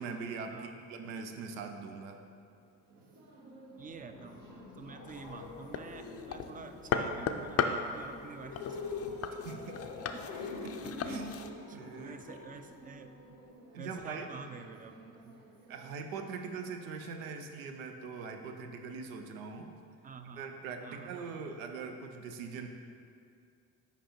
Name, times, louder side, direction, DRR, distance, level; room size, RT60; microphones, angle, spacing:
voice 1, 0.0-2.2 9.4-9.8 10.6-11.3 11.7-12.2 13.7-14.3 15.7-19.7 20.4-22.7, right 5 dB, 85° right, 5 dB, 0.6 m, -42 dB
sound 1, 2.0-20.4, right 2 dB, 65° right, 1.0 m, -56 dB
sound 2, 3.8-13.5, left 4 dB, 80° left, 0.7 m, -45 dB
voice 2, 3.8-4.4 4.8-8.8 10.1-10.2 11.0-11.4 11.7-13.4 13.8-15.4 20.0-20.4 20.8-21.2, right 5 dB, 20° right, 8 dB, 0.4 m, -48 dB
sound 3, 5.1-11.5, left 6 dB, 40° left, 0.5 m, -37 dB
5.1 x 5.1 x 4.4 m, 2.4 s
hypercardioid pair, 50°, 39 cm